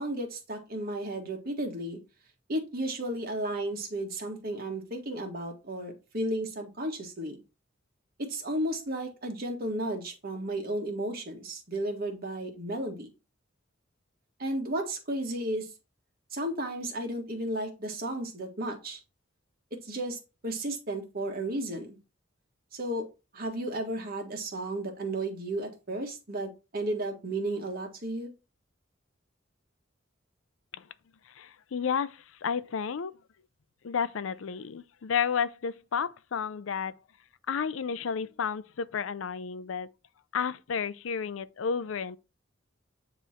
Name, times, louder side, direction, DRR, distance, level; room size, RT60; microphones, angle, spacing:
voice 1, 0.0-2.0 2.5-7.4 8.2-13.1 14.4-15.7 16.3-19.0 19.7-22.0 22.7-23.1 23.3-28.3, right 1 dB, 50° right, 1.6 m, -33 dB
voice 2, 31.3-33.1 33.8-37.0 37.5-39.9 40.3-42.2, left 6 dB, 85° left, 0.5 m, -32 dB
9.1 x 3.1 x 4.3 m
head